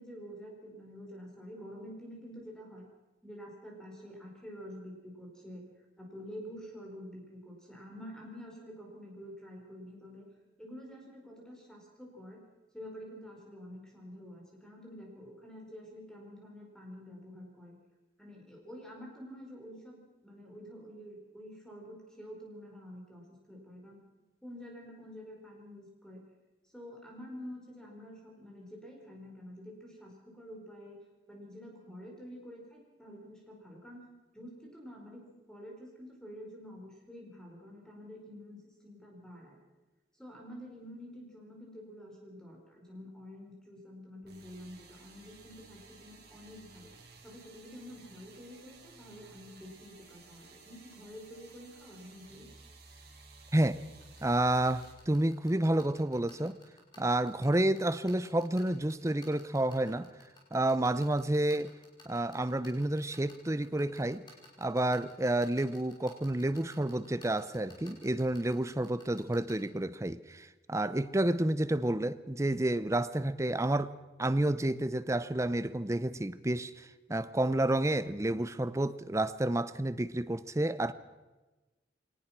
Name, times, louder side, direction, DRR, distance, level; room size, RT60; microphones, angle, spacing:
voice 1, 0.0-2.9 3.2-5.6 6.0-10.3 10.6-12.4 12.7-17.8 18.2-24.0 24.4-26.2 26.7-31.0 31.3-34.0 34.3-39.6 40.2-46.9 47.2-52.5, equal, 5° left, 5.1 m, -48 dB
sound 1, 44.3-54.9, right 3 dB, 60° right, 4.5 m, -55 dB
sound 2, 54.0-69.5, left 2 dB, 25° left, 5.1 m, -54 dB
voice 2, 54.2-56.6 57.0-60.1 60.5-61.7 62.1-64.2 64.6-73.9 74.2-80.9, right 1 dB, 15° right, 0.6 m, -30 dB
23.0 x 18.5 x 6.0 m
head